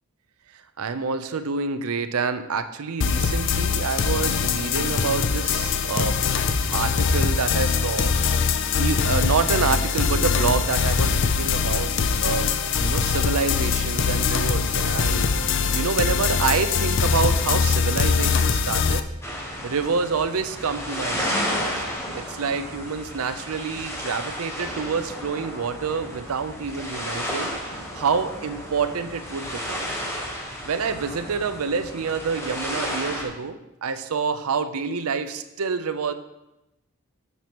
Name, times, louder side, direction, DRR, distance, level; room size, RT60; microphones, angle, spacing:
voice 1, 0.8-6.2 6.7-8.1 8.7-11.9 12.2-12.5 12.8-15.3 15.7-19.0 19.6-21.7 22.1-27.5 27.9-29.9 30.6-36.1, right 5 dB, 75° right, 10 dB, 0.5 m, -27 dB
sound 1, 3.0-19.0, left 5 dB, 55° left, 0.4 m, -22 dB
sound 2, 19.2-33.2, equal, 10° left, 1.0 m, -32 dB
9.1 x 6.7 x 2.9 m, 0.92 s
head